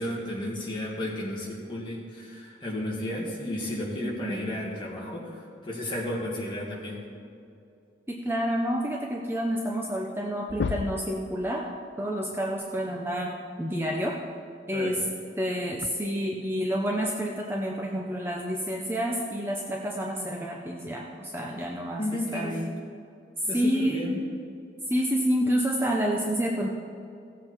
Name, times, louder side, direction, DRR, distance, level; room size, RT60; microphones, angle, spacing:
voice 1, 0.0-7.0 14.7-15.0 22.0-22.5 23.5-24.2, left 1 dB, 25° left, -4 dB, 2.2 m, -33 dB
voice 2, 4.0-4.6 8.1-11.6 12.0-14.1 14.7-15.0 15.4-22.7 23.5-24.1 24.9-26.7, equal, 10° right, -1 dB, 0.7 m, -29 dB
sound 1, 10.1-10.2 10.5-11.1 12.9-13.0 14.8-14.9 15.8-15.9, left 5 dB, 75° left, 0.4 m, -31 dB
16.5 x 7.7 x 4.5 m, 2.5 s
head